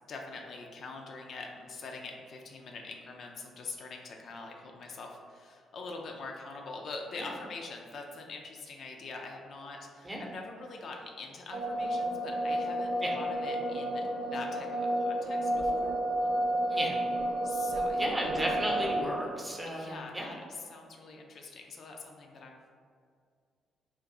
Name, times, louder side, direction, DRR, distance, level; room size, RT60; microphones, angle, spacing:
voice 1, 0.1-15.9 17.4-18.0 19.7-22.6, left 3 dB, 55° left, 1 dB, 0.3 m, -44 dB
sound 1, 11.5-19.0, right 1 dB, 65° right, 0.4 m, -31 dB
voice 2, 18.0-20.4, right 1 dB, 20° right, -1 dB, 0.7 m, -34 dB
2.5 x 2.4 x 3.7 m, 2.1 s
figure-of-eight pair, 40°, 0 cm